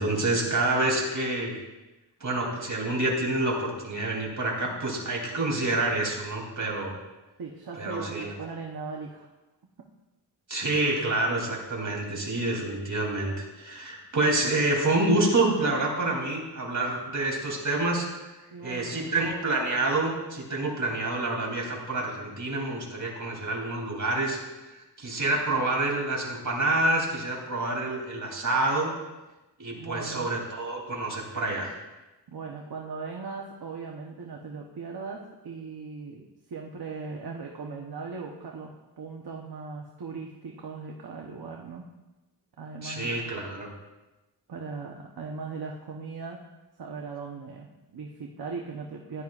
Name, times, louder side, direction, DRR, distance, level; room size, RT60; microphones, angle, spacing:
voice 1, 0.0-1.6 2.2-6.9 7.8-8.3 10.5-18.2 18.6-24.4 24.7-28.9 29.6-31.7 42.8-43.7, right 2 dB, 45° right, -1 dB, 3.2 m, -27 dB
voice 2, 7.4-9.3 18.5-19.2 29.8-30.3 32.3-41.9 42.6-43.5 44.5-46.4 46.8-49.2, right 4 dB, 60° right, 0 dB, 1.1 m, -39 dB
15.5 x 11.0 x 2.5 m, 1.1 s
wide cardioid pair, 120°, 42 cm